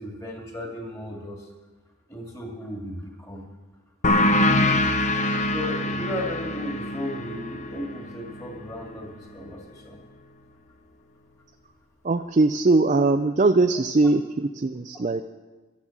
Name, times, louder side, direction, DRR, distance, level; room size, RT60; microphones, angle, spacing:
voice 1, 0.0-1.5 2.1-3.5 5.5-10.0, equal, 15° left, 0 dB, 2.4 m, -35 dB
sound 1, 4.0-9.2, left 1 dB, 35° left, 0.7 m, -24 dB
voice 2, 12.0-15.2, right 3 dB, 35° right, 7 dB, 0.4 m, -21 dB
12.0 x 10.0 x 7.3 m, 1.3 s
head